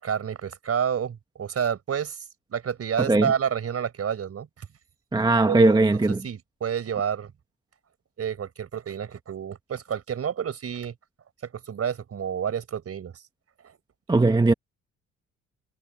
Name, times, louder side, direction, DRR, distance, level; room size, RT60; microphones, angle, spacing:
voice 1, 0.0-2.2 2.5-4.6 5.5-5.8 6.2-7.3 8.2-10.9 11.4-13.2 13.6-13.7, right 8 dB, 50° right, 5.2 m, -29 dB
voice 2, 3.0-3.3 5.1-6.2 14.1-14.5, right 2 dB, 15° right, 1.3 m, -19 dB
cardioid pair, 90°, 30 cm